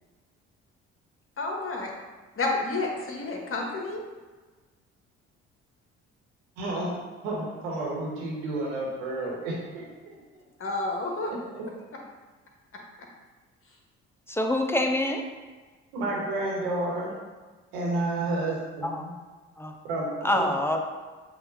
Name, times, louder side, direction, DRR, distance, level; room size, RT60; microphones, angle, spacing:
voice 1, 1.4-1.9 2.4-4.0 10.6-11.3, left 2 dB, 35° left, 0 dB, 1.1 m, -30 dB
voice 2, 6.6-7.0 7.2-10.4 11.3-11.6 15.9-17.1 17.7-19.1 19.8-20.5, right 2 dB, 75° right, -3 dB, 1.3 m, -31 dB
voice 3, 14.3-15.2 18.8-19.1 19.6-19.8 20.2-20.9, left 1 dB, 5° left, 3 dB, 0.5 m, -26 dB
7.5 x 2.6 x 2.6 m, 1.3 s
hypercardioid pair, 50°, 35 cm